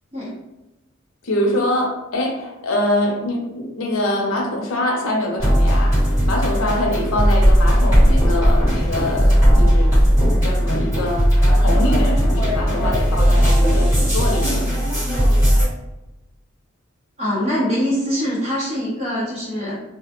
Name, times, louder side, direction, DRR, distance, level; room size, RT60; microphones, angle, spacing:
voice 1, 1.2-6.0 6.3-9.9 10.4-11.3 11.6-14.7, left 1 dB, 85° left, 1 dB, 0.5 m, -24 dB
sound 1, 5.4-15.6, equal, 10° right, 1.3 m, -16 dB
voice 2, 17.2-19.8, equal, 30° right, -6 dB, 0.9 m, -23 dB
2.3 x 2.1 x 2.8 m, 0.99 s
head